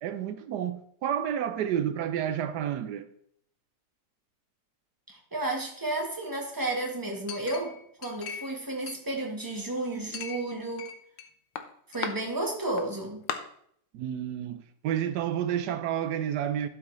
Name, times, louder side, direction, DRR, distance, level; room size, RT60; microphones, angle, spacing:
voice 1, 0.0-3.1 13.9-16.7, right 9 dB, 70° right, 1.1 m, -30 dB
voice 2, 5.1-10.9 11.9-13.2, right 2 dB, 10° right, 1.3 m, -32 dB
Chink clink, 7.3-8.6 8.9-9.6 10.1-11.3 11.6-12.1 12.8-12.9 13.3-13.4, left 8 dB, 90° left, 1.5 m, -38 dB
12.0 x 6.3 x 3.2 m
omnidirectional pair, 1.9 m